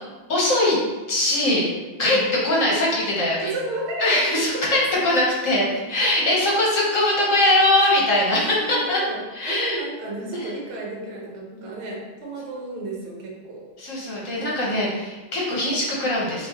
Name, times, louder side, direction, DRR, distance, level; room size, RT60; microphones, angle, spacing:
voice 1, 0.3-0.8 1.1-1.7 2.0-2.2 2.4-3.5 4.0-9.0 9.3-9.8 13.8-16.5, left 1 dB, 50° left, -4 dB, 1.1 m, -21 dB
voice 2, 3.4-4.7 6.0-6.1 8.6-13.7 14.3-14.9, right 2 dB, 80° right, -2 dB, 1.9 m, -33 dB
6.1 x 2.8 x 2.9 m, 1.2 s
omnidirectional pair, 2.4 m